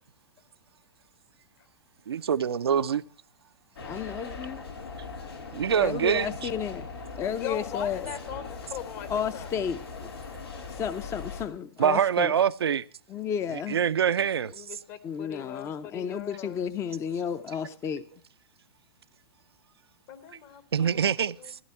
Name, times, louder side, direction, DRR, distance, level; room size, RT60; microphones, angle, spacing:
voice 1, 2.1-3.0 5.5-6.3 11.8-12.8 13.7-14.6 20.7-21.6, right 8 dB, 90° right, 0.5 m, -25 dB
sound 1, 3.8-11.5, left 4 dB, 90° left, 3.3 m, -40 dB
voice 2, 3.8-4.6 5.7-6.9 7.2-8.1 9.1-10.1 10.7-12.3 13.1-13.8 15.0-18.0, left 8 dB, 20° left, 0.6 m, -32 dB
voice 3, 7.2-9.5 14.5-16.6 20.1-21.1 21.4-21.5, left 10 dB, 45° left, 1.6 m, -40 dB
15.0 x 11.5 x 4.3 m
hypercardioid pair, 125°, 13 cm